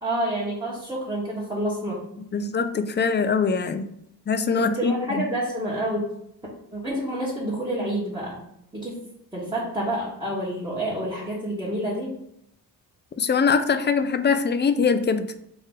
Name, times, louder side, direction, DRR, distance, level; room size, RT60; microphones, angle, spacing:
voice 1, 0.0-2.0 2.3-2.4 4.6-6.1 6.7-8.4 8.7-9.0 9.3-12.1, right 1 dB, 10° right, -7 dB, 1.3 m, -28 dB
voice 2, 2.3-3.9 4.3-5.2 13.2-15.2, left 5 dB, 25° left, 9 dB, 0.4 m, -22 dB
3.8 x 2.5 x 3.7 m, 0.75 s
supercardioid pair, 45°, 46 cm